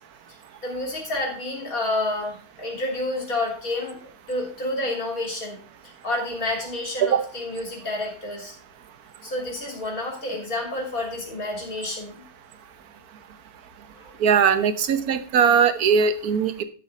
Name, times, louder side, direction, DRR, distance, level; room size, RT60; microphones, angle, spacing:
voice 1, 0.6-5.6 5.8-8.5 9.2-12.2 14.0-14.2, left 2 dB, 60° left, 0 dB, 3.8 m, -29 dB
voice 2, 14.2-16.6, right 6 dB, 70° right, 11 dB, 1.4 m, -20 dB
12.5 x 7.8 x 4.1 m, 0.39 s
omnidirectional pair, 1.7 m